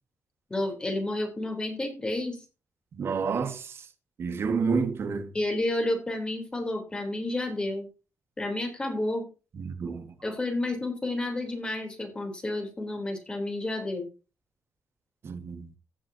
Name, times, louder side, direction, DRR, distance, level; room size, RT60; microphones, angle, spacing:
voice 1, 0.5-2.4 5.3-7.9 8.4-9.3 10.2-14.1, left 2 dB, 20° left, 3.6 m, -30 dB
voice 2, 2.9-3.8 4.2-5.3 9.6-10.1 15.2-15.7, right 5 dB, 55° right, 1.7 m, -29 dB
15.5 x 7.6 x 2.8 m
wide cardioid pair, 135°, 5 cm